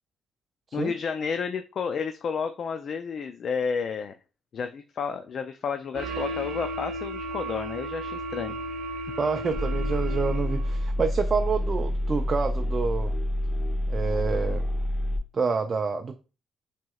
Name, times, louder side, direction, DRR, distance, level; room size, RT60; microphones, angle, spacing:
voice 1, 0.7-4.1 4.5-8.6, left 6 dB, 55° left, 0.3 m, -31 dB
sound 1, 5.9-10.8, right 1 dB, 75° right, 0.8 m, -34 dB
voice 2, 9.2-13.2 13.9-14.6 15.3-16.2, right 5 dB, 40° right, 0.4 m, -28 dB
sound 2, 9.5-15.2, left 1 dB, 35° left, 0.9 m, -28 dB
5.9 x 2.9 x 2.3 m
cardioid pair, 90°, 0 cm